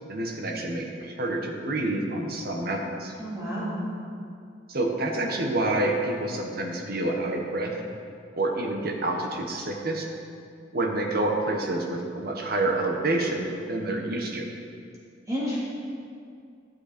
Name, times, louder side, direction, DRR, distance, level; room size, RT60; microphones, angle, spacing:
voice 1, 0.1-3.1 4.7-7.8 8.4-10.1 10.7-14.5, right 2 dB, 55° right, 2 dB, 1.3 m, -28 dB
voice 2, 3.2-3.8 15.3-15.6, equal, 20° right, -9 dB, 2.6 m, -30 dB
13.0 x 7.8 x 4.4 m, 2.4 s
head